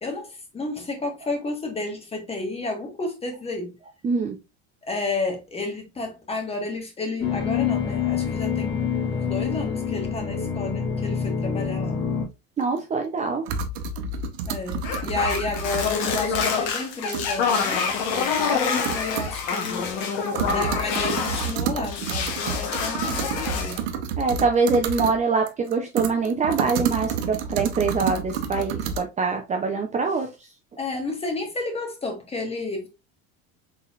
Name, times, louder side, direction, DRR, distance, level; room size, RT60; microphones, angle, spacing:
voice 1, 0.0-3.7 4.9-8.8 9.1-12.1 14.5-19.9 20.5-23.8 30.8-32.9, left 3 dB, 20° left, 1.5 m, -31 dB
voice 2, 4.0-4.4 12.6-13.5 24.2-30.3, right 4 dB, 25° right, 0.6 m, -24 dB
sound 1, 7.2-12.3, left 7 dB, 35° left, 1.4 m, -26 dB
sound 2, 12.6-12.7 13.5-16.5 16.9-17.3 17.7-17.8 18.4-18.5 18.8-19.4 19.7-19.8 20.0-25.2 25.5-29.0, right 5 dB, 90° right, 0.8 m, -30 dB
sound 3, 14.8-21.6 21.8-23.8, left 5 dB, 65° left, 1.2 m, -26 dB
4.0 x 3.9 x 2.4 m
supercardioid pair, 115°, 31 cm